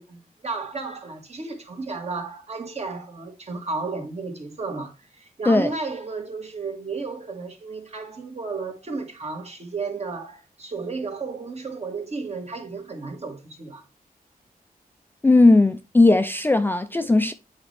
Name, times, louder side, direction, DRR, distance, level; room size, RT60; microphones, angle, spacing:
voice 1, 0.0-13.8, right 4 dB, 45° right, 1.8 m, -33 dB
voice 2, 15.2-17.3, left 2 dB, 15° left, 0.4 m, -17 dB
8.5 x 4.2 x 3.3 m
wide cardioid pair, 165°, 16 cm